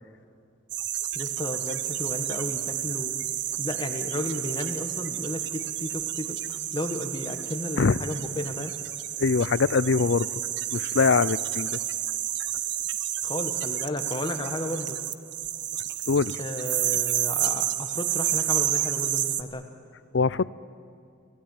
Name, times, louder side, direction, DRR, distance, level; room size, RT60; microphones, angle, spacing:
sound 1, 0.7-19.4, right 11 dB, 65° right, 0.9 m, -30 dB
voice 1, 1.1-3.2 3.6-6.4 6.7-8.7 13.2-15.0 16.4-19.6, left 1 dB, 25° left, 7 dB, 1.3 m, -33 dB
voice 2, 9.2-10.3 10.7-11.8 16.1-16.4 20.1-20.5, left 4 dB, 65° left, 19 dB, 0.5 m, -23 dB
25.5 x 17.5 x 9.1 m, 2.3 s
head